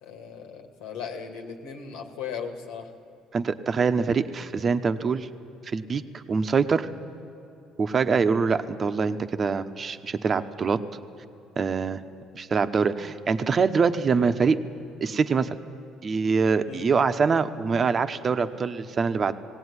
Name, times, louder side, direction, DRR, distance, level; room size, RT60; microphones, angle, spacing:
voice 1, 0.0-2.9 16.7-16.9, left 6 dB, 90° left, 5 dB, 2.2 m, -37 dB
voice 2, 3.3-5.3 5.7-6.9 7.8-10.8 11.6-12.0 12.3-14.6 15.0-15.5 16.0-19.3, right 5 dB, 35° right, 10 dB, 1.0 m, -24 dB
19.0 x 17.5 x 9.8 m, 3.0 s
cardioid pair, 95°, 0 cm